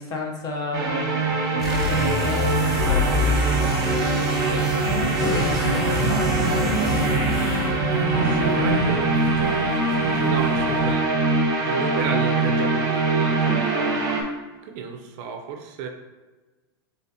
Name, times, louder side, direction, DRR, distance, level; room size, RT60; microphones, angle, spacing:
voice 1, 0.0-4.0 5.1-7.7, left 2 dB, 30° left, 1 dB, 0.8 m, -33 dB
sound 1, 0.7-14.2, right 3 dB, 30° right, 1.0 m, -23 dB
sound 2, 1.6-7.8, left 2 dB, 5° right, 1.3 m, -26 dB
voice 2, 4.4-4.7 7.7-7.8 8.2-9.7 10.2-11.4 11.6-14.0 14.6-15.9, right 6 dB, 45° right, 4 dB, 0.5 m, -33 dB
sound 3, 4.8-10.9, right 1 dB, 85° left, 1.3 m, -27 dB
4.1 x 3.7 x 2.7 m, 1.2 s
supercardioid pair, 135°, 13 cm